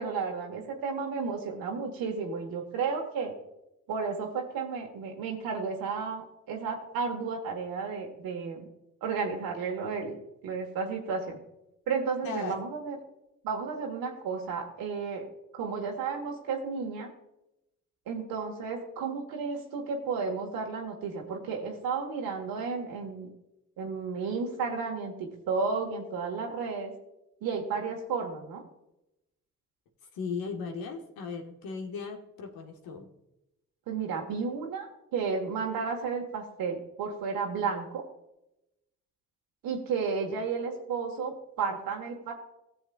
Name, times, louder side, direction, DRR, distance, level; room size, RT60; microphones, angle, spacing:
voice 1, 0.0-3.3 3.9-8.6 9.0-10.2 10.4-11.4 11.9-13.0 13.4-15.2 15.5-17.1 18.1-23.3 23.8-26.9 27.4-28.6 33.9-38.0 39.6-42.3, right 5 dB, 75° right, 1 dB, 1.4 m, -33 dB
voice 2, 12.2-12.6 30.1-33.1, left 5 dB, 75° left, 3 dB, 1.5 m, -37 dB
18.0 x 6.9 x 2.3 m, 0.90 s
hypercardioid pair, 45°, 36 cm